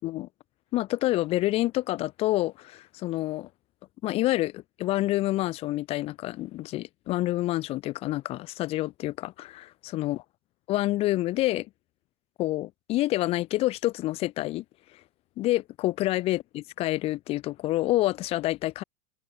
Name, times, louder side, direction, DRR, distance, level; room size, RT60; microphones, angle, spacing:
voice 1, 0.7-3.5 4.0-10.2 10.7-11.7 12.4-14.6 15.4-18.8, left 17 dB, 30° left, 3.5 m, -28 dB
supercardioid pair, 165°, 19 cm